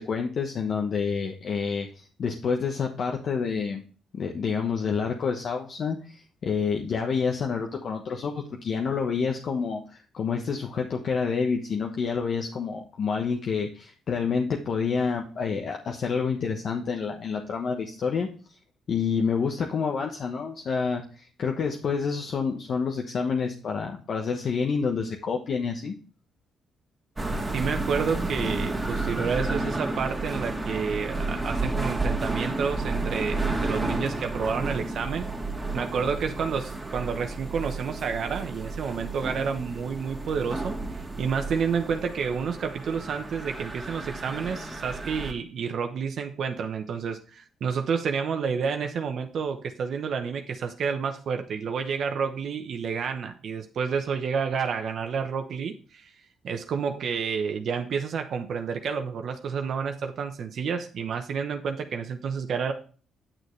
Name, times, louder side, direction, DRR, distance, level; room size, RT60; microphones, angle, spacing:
voice 1, 0.0-3.8 4.1-18.3 18.9-25.9, left 5 dB, 55° left, 2 dB, 1.2 m, -28 dB
sound 1, 27.2-45.3, right 2 dB, 15° right, 2.0 m, -31 dB
voice 2, 27.5-35.3 35.7-56.1 56.4-62.7, right 6 dB, 60° right, 5 dB, 1.0 m, -30 dB
9.0 x 6.6 x 3.3 m, 0.39 s
cardioid pair, 90°, 0 cm